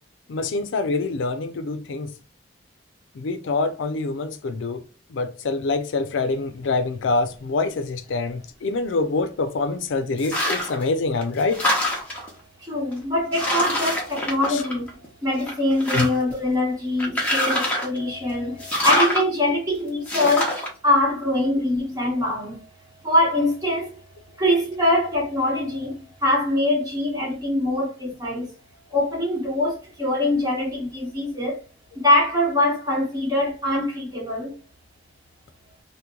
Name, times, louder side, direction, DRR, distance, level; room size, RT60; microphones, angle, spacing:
voice 1, 0.3-2.1 3.1-4.8 5.1-11.6 14.5-14.6 15.9-16.1, left 3 dB, 80° left, 0.4 m, -25 dB
sound 1, 10.2-10.8 11.2-12.3 12.9-13.0 13.3-15.1 15.4-16.3 17.0-18.0 18.6-19.2 20.1-20.7, left 1 dB, 5° left, 0.7 m, -24 dB
voice 2, 12.6-14.9 15.2-22.6 23.0-24.0 24.4-28.5 28.9-31.6 31.9-34.5, left 1 dB, 20° right, 1.1 m, -23 dB
2.9 x 2.1 x 3.6 m
head